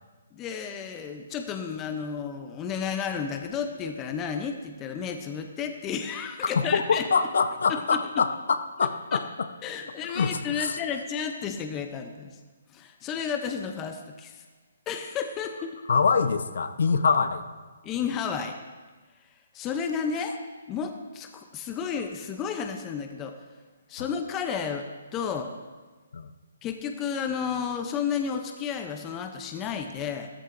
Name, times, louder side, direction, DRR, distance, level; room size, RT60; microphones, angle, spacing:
voice 1, 0.3-7.1 7.7-8.0 9.1-9.2 9.6-12.3 12.7-14.4 14.9-15.8 17.8-18.5 19.5-20.3 20.7-23.4 23.9-24.8 25.1-25.5 26.6-30.3, left 7 dB, 15° left, 5 dB, 0.5 m, -32 dB
voice 2, 6.6-9.5 10.0-10.8 15.9-17.5 24.0-24.1 26.1-26.3, left 5 dB, 60° left, 10 dB, 0.7 m, -25 dB
14.0 x 13.5 x 2.5 m, 1.3 s
hypercardioid pair, 175°, 0 cm